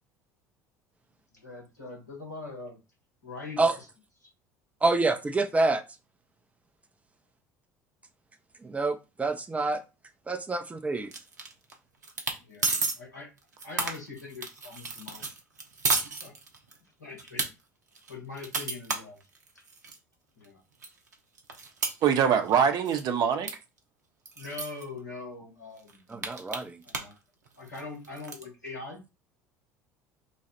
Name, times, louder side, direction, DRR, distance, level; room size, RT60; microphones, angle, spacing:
voice 1, 1.3-2.8 3.2-3.8 4.2-4.3 12.4-13.3 13.6-15.3 16.2-16.3 17.0-17.4 18.1-19.2 19.5-19.6 20.4-20.6 24.3-26.0 26.8-27.2 27.6-29.0, left 3 dB, 90° left, 1.6 m, -42 dB
voice 2, 4.8-5.8 8.6-9.8 10.3-11.1 26.1-26.8, right 3 dB, 15° right, 0.7 m, -27 dB
sound 1, 11.1-11.7 12.0-12.4 12.6-12.9 13.4-16.8 17.2-17.5 17.9-20.0 20.4-20.5 20.8-22.6 22.8-23.1 23.5-23.6 23.8-23.9 24.2-24.8 25.4-25.5 25.8-27.2 27.5-28.4, right 3 dB, 85° right, 0.7 m, -32 dB
voice 3, 22.0-23.5, right 7 dB, 50° right, 0.8 m, -23 dB
3.1 x 2.4 x 4.2 m
figure-of-eight pair, 65°, 9 cm